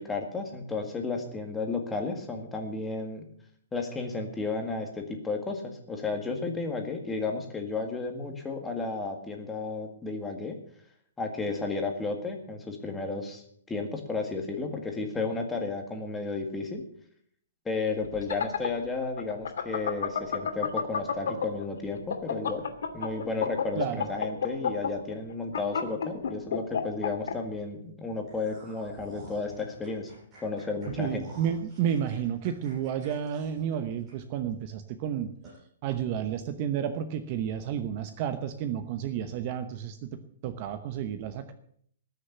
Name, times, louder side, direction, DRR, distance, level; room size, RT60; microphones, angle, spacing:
voice 1, 0.0-3.2 3.7-10.6 11.2-16.8 17.6-22.6 22.9-30.1 30.4-31.3, left 3 dB, 10° left, 3 dB, 1.8 m, -33 dB
sound 1, 18.0-21.6 22.0-27.3, left 7 dB, 75° left, 2.4 m, -29 dB
voice 2, 23.8-24.1 30.9-35.3 35.8-41.5, right 9 dB, 30° right, 10 dB, 0.9 m, -31 dB
sound 2, 28.2-34.5 34.9-35.0 35.4-35.6, right 2 dB, 15° right, 7.7 m, -50 dB
19.0 x 6.7 x 8.0 m, 0.64 s
hypercardioid pair, 170°, 0 cm